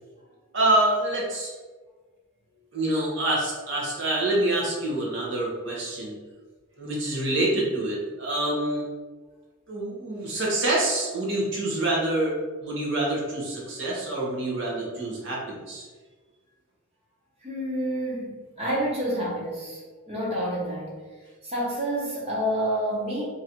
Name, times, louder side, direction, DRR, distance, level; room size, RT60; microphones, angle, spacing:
voice 1, 0.5-1.5 2.7-6.1 6.8-8.9 9.7-15.9, right 1 dB, 55° right, -4 dB, 1.1 m, -26 dB
voice 2, 17.4-19.8 20.1-20.9 21.4-23.2, equal, 30° right, -5 dB, 1.0 m, -28 dB
3.1 x 2.6 x 4.3 m, 1.4 s
head